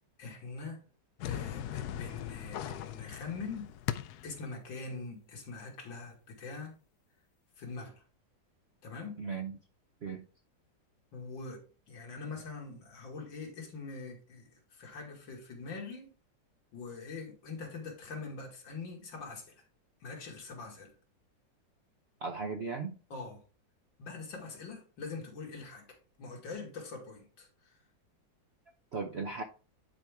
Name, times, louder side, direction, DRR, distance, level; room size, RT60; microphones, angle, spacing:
voice 1, 0.2-0.8 1.2-3.7 4.2-6.8 7.6-7.9 8.8-9.2 11.1-16.1 16.7-19.6 20.0-20.9 23.1-23.4 24.0-27.8, left 4 dB, 85° left, 2.6 m, -43 dB
sound 1, 1.2-4.4, left 11 dB, 70° left, 1.0 m, -39 dB
voice 2, 9.2-9.6 10.0-10.3 22.2-23.0 28.9-29.4, right 4 dB, 65° right, 0.6 m, -36 dB
9.8 x 4.5 x 3.5 m
omnidirectional pair, 2.0 m